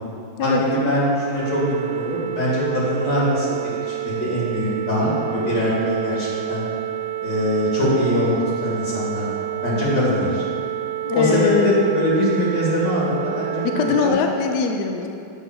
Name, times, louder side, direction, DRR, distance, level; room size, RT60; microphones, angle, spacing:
voice 1, 0.4-6.6 7.2-8.3 8.6-9.3 9.6-10.4 11.1-13.7 14.0-14.2, equal, 55° left, -7 dB, 2.5 m, -22 dB
sound 1, 1.3-14.1, right 15 dB, 75° right, 1.1 m, -29 dB
voice 2, 11.0-11.9 13.6-15.1, left 5 dB, 80° left, 4 dB, 0.9 m, -21 dB
7.2 x 4.3 x 5.8 m, 2.5 s
omnidirectional pair, 2.3 m